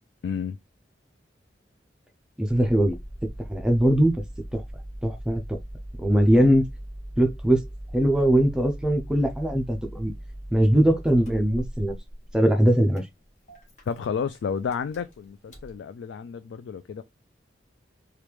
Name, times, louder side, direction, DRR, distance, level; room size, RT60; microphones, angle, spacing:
voice 1, 0.2-0.6 13.9-17.0, left 6 dB, 90° left, 0.3 m, -31 dB
Engine starting, 2.4-15.8, equal, 40° left, 1.0 m, -40 dB
voice 2, 2.4-3.0 3.2-4.1 4.5-4.6 5.0-5.6 6.0-6.7 7.2-7.6 7.9-10.1 10.5-11.9 12.3-13.1, right 1 dB, 5° right, 0.4 m, -21 dB
3.1 x 2.4 x 3.3 m
head